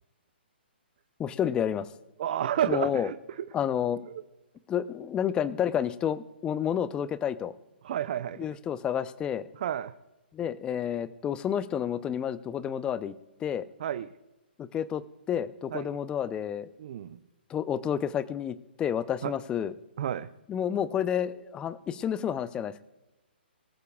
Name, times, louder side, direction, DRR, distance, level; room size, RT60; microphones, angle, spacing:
voice 1, 1.2-1.9 2.7-3.1 3.5-4.1 4.7-7.5 8.4-9.5 10.3-13.1 13.4-13.7 14.6-15.0 15.3-16.7 17.5-19.7 20.5-22.8, left 9 dB, 15° left, 16 dB, 0.6 m, -30 dB
voice 2, 2.2-3.5 7.8-8.4 9.6-9.9 13.8-14.1 15.7-15.9 16.8-17.2 19.2-19.3 20.0-20.3, right 10 dB, 50° right, 11 dB, 0.6 m, -31 dB
23.0 x 14.5 x 2.3 m, 1.0 s
hypercardioid pair, 135°, 6 cm